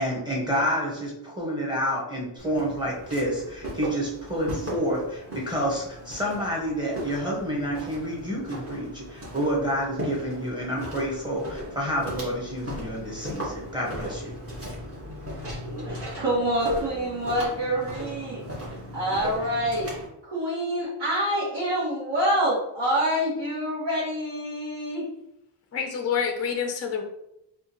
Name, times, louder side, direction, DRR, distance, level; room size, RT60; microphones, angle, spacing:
voice 1, 0.0-14.4, equal, 10° right, -4 dB, 1.2 m, -29 dB
Walk footsteps, 2.4-20.1, equal, 30° right, 1.4 m, -37 dB
voice 2, 15.6-19.9 20.2-25.1, equal, 60° right, -9 dB, 1.2 m, -27 dB
voice 3, 25.7-27.0, left 7 dB, 35° left, 4 dB, 0.4 m, -27 dB
3.5 x 2.4 x 2.9 m, 0.84 s
wide cardioid pair, 70°, 50 cm